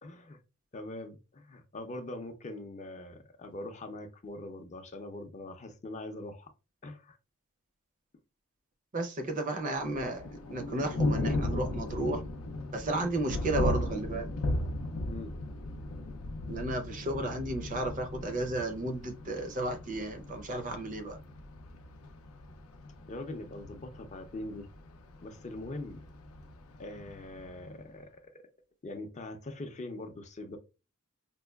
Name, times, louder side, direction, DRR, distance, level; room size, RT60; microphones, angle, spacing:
voice 1, 0.0-0.4 0.7-6.5 6.8-7.2 9.6-9.7 15.1-15.3 23.1-24.7 25.2-26.0 26.8-28.5 28.8-30.6, left 2 dB, 35° left, 0.5 m, -42 dB
voice 2, 8.9-10.2 10.5-12.2 12.7-14.3 16.5-21.2, right 2 dB, 40° right, 0.5 m, -33 dB
Thunder, 9.8-27.7, left 2 dB, 85° left, 0.5 m, -36 dB
5.2 x 2.2 x 2.2 m
head